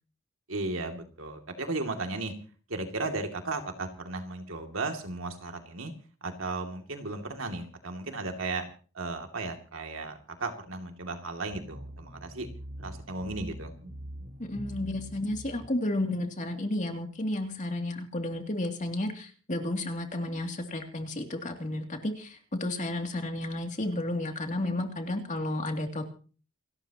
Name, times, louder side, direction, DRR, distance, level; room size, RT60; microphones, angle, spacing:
voice 1, 0.5-2.3 2.7-5.9 6.2-8.6 8.9-12.5 12.8-13.7, right 3 dB, 70° right, 4 dB, 2.6 m, -35 dB
sound 1, 11.5-15.7, equal, 40° right, 2.8 m, -43 dB
voice 2, 14.4-26.0, left 1 dB, 35° left, 4 dB, 2.8 m, -32 dB
28.5 x 13.0 x 3.0 m, 0.40 s
head